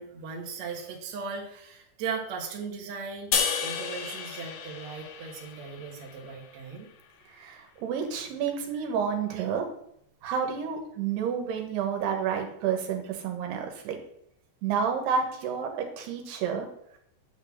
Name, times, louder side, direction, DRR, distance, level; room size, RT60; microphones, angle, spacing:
voice 1, 0.0-3.3 3.6-6.9 9.4-9.5, right 5 dB, 55° right, 0 dB, 2.2 m, -37 dB
sound 1, 3.3-6.6, left 7 dB, 70° left, 2.2 m, -32 dB
voice 2, 7.3-9.7 10.2-14.0 14.6-16.7, right 7 dB, 85° right, 3 dB, 3.3 m, -30 dB
9.1 x 4.0 x 7.3 m, 0.71 s
omnidirectional pair, 4.6 m